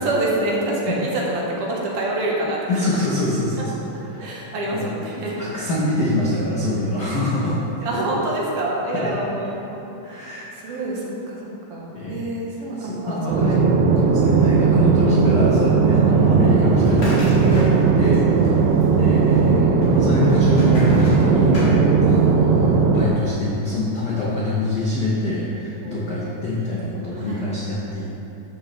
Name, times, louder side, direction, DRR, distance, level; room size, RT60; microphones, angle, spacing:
voice 1, 0.0-3.0 3.6-3.7 4.2-5.5 7.8-13.9 14.2-14.5 16.1-16.3 25.8-26.5 27.1-27.5, right 1 dB, 60° right, -4 dB, 1.8 m, -28 dB
voice 2, 2.7-3.8 4.1-4.9 5.4-7.6 8.9-9.1 10.0-10.8 11.9-12.3 12.8-18.3 19.0-28.2, left 1 dB, 70° left, -7 dB, 1.0 m, -25 dB
sound 1, 13.3-23.1, right 5 dB, 90° right, 1.5 m, -17 dB
sound 2, 16.7-18.2 18.4-19.2 19.8-22.3, left 1 dB, 40° left, 2.6 m, -28 dB
13.5 x 6.6 x 3.3 m, 2.9 s
omnidirectional pair, 3.8 m